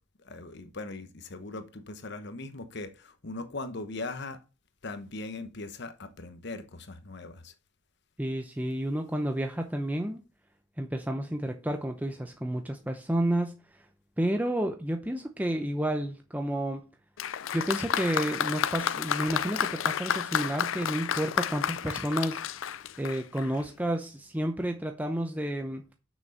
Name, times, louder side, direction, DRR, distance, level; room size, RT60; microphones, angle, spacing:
voice 1, 0.2-4.4 4.8-7.5, left 3 dB, 60° left, 1.1 m, -39 dB
voice 2, 8.2-10.2 10.8-13.8 14.2-16.8 17.5-22.4 22.7-25.8, right 1 dB, 10° right, 0.7 m, -31 dB
Applause, 17.2-23.6, left 8 dB, 80° left, 0.5 m, -31 dB
6.8 x 6.1 x 6.4 m
head